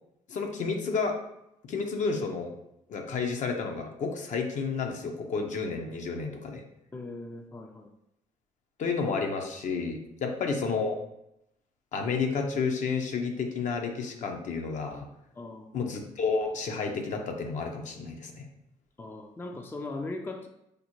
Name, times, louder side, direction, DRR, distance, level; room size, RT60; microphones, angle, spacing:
voice 1, 0.3-1.2 1.6-2.5 2.9-6.6 8.8-11.0 11.9-15.1 15.7-18.5, left 4 dB, 60° left, 3 dB, 0.6 m, -31 dB
voice 2, 6.9-7.9 10.2-10.4 15.4-15.7 19.0-20.5, left 2 dB, 15° left, 5 dB, 0.4 m, -39 dB
5.0 x 2.1 x 2.9 m, 0.81 s
supercardioid pair, 80°, 14 cm